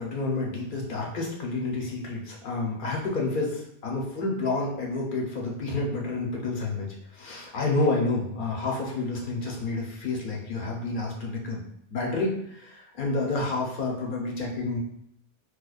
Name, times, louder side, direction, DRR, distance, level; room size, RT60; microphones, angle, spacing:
voice 1, 0.0-6.9 7.1-11.6 11.9-14.8, left 3 dB, 50° left, -2 dB, 0.9 m, -29 dB
4.5 x 2.2 x 2.3 m, 0.74 s
omnidirectional pair, 1.2 m